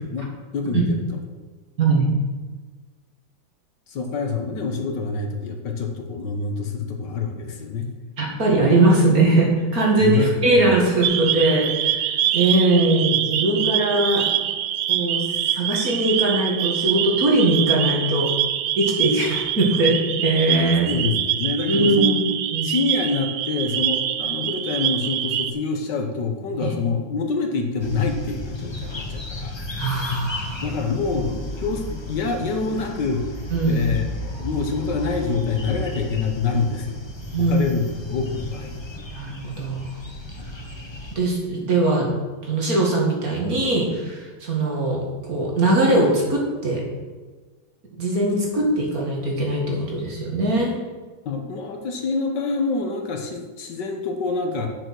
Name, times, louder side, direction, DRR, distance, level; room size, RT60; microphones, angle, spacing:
voice 1, 0.1-0.8 3.9-7.9 10.0-10.3 10.6-10.7 20.9-22.2 22.6-29.6 30.6-33.3 33.6-37.0 37.4-38.8 40.4-40.5 51.3-54.7, left 4 dB, 65° left, 4 dB, 1.7 m, -26 dB
voice 2, 1.8-2.1 8.2-14.3 14.9-15.3 15.5-18.3 18.8-19.9 20.2-20.9 21.7-22.2 22.5-22.7 26.6-26.7 29.8-30.6 33.5-33.8 37.3-37.5 39.1-39.8 41.2-42.1 42.4-46.8 48.0-50.7, right 2 dB, 50° right, -2 dB, 2.5 m, -20 dB
sound 1, 11.0-25.5, right 11 dB, 70° right, 0.8 m, -25 dB
sound 2, 27.8-41.2, left 2 dB, 20° left, 0.7 m, -33 dB
8.6 x 6.8 x 6.2 m, 1.4 s
omnidirectional pair, 2.1 m